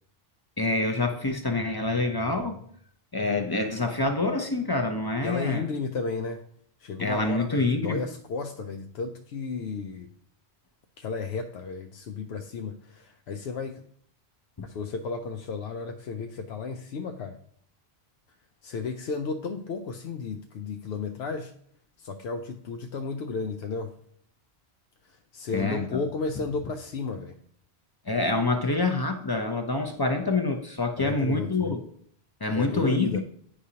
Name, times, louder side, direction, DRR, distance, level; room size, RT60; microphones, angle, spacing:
voice 1, 0.6-2.6 3.1-5.6 7.0-8.1 14.6-14.7 25.5-25.8 28.1-31.8 32.4-33.2, left 2 dB, 30° left, 5 dB, 0.5 m, -26 dB
voice 2, 5.2-6.5 6.8-10.1 11.0-13.8 14.6-17.4 18.6-21.5 22.0-24.0 25.0-27.4 31.0-31.7 32.5-33.2, left 4 dB, 80° left, 5 dB, 0.8 m, -33 dB
9.7 x 4.9 x 2.8 m, 0.63 s
omnidirectional pair, 1.1 m